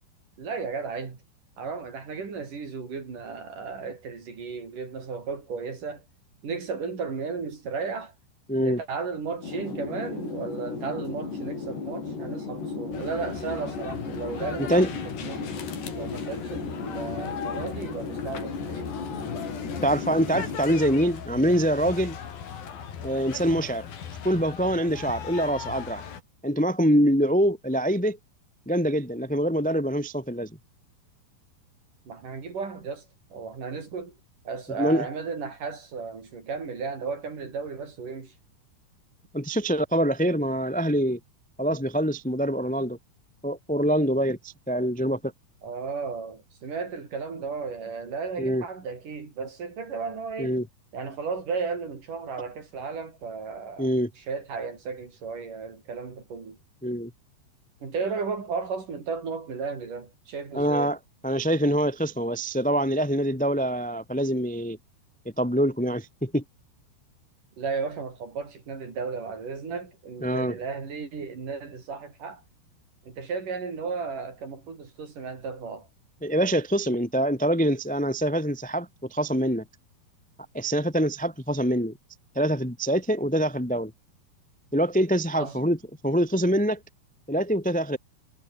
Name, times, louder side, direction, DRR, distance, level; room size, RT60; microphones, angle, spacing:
voice 1, 0.4-1.2 1.6-6.0 6.4-8.1 8.6-15.5 15.9-18.9 32.1-33.1 33.3-34.2 34.4-38.3 45.6-50.6 50.9-53.9 54.2-56.6 57.8-60.9 67.6-72.4 73.1-75.9 85.3-85.6, right 5 dB, 50° right, 6.2 m, -34 dB
voice 2, 8.5-8.8 14.7-14.9 19.8-22.2 23.0-23.8 24.2-26.0 26.4-28.2 28.6-30.5 34.8-35.0 39.3-41.2 41.6-43.0 43.4-45.3 48.4-48.6 50.4-50.6 53.8-54.1 56.8-57.1 60.5-61.0 61.2-64.8 65.4-66.4 70.2-70.5 76.2-79.6 80.5-81.9 82.3-83.9 84.7-85.8 86.0-86.8 87.3-88.0, equal, 5° left, 1.1 m, -24 dB
sound 1, 9.4-20.6, left 4 dB, 75° left, 10.0 m, -35 dB
sound 2, 12.9-26.2, left 7 dB, 60° left, 4.8 m, -38 dB
omnidirectional pair, 4.8 m